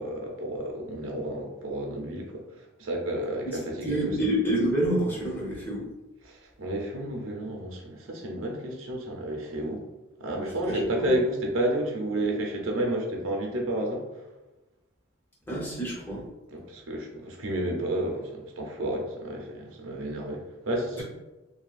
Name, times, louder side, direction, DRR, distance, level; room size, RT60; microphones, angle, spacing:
voice 1, 0.0-2.4 2.8-4.1 6.2-9.8 10.2-14.0 16.5-21.0, right 1 dB, 90° right, 1 dB, 0.6 m, -31 dB
voice 2, 3.5-5.9 10.6-11.1 15.5-16.2 21.0-21.1, right 1 dB, 10° left, -5 dB, 0.6 m, -28 dB
2.7 x 2.3 x 2.3 m, 1.1 s
head